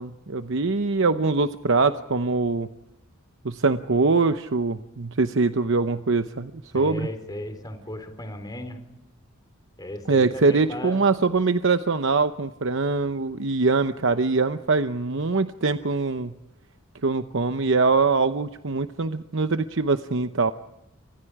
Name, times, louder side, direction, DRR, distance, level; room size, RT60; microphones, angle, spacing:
voice 1, 0.0-2.7 3.4-7.1 10.1-16.3 17.0-20.5, right 3 dB, 65° right, 9 dB, 0.9 m, -23 dB
voice 2, 6.7-8.8 9.8-11.0, left 1 dB, 20° left, 6 dB, 3.9 m, -35 dB
29.5 x 26.0 x 4.8 m, 0.88 s
head